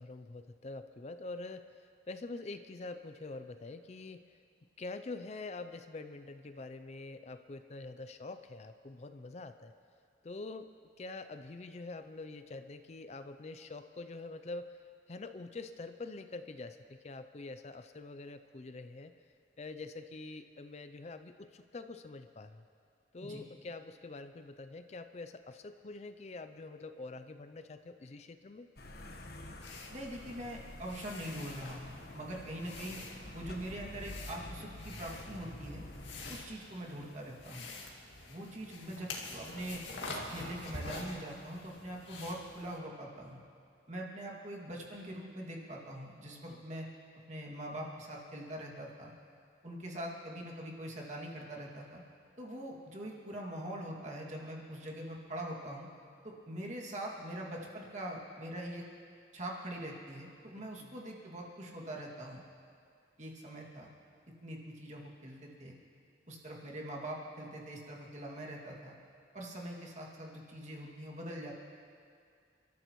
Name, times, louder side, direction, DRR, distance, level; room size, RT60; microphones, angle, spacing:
voice 1, 0.0-4.4 4.8-9.7 10.2-10.7 11.0-14.8 15.1-19.1 19.6-22.6 23.1-28.7 46.3-46.6 60.8-61.0, left 3 dB, 35° left, 9 dB, 0.4 m, -45 dB
sound 1, 28.8-36.4, left 1 dB, 55° left, 1.2 m, -48 dB
sound 2, 29.6-42.8, left 2 dB, 80° left, 2.1 m, -47 dB
voice 2, 29.9-33.0 33.3-35.8 36.3-37.7 38.3-39.8 40.1-43.4 43.9-46.9 47.2-49.1 49.6-52.0 52.4-55.9 56.2-58.9 59.3-62.4 63.2-63.9 64.4-65.8 66.3-68.9 69.3-71.5, right 1 dB, 40° right, -3 dB, 2.3 m, -43 dB
30.0 x 13.0 x 3.1 m, 2.3 s
head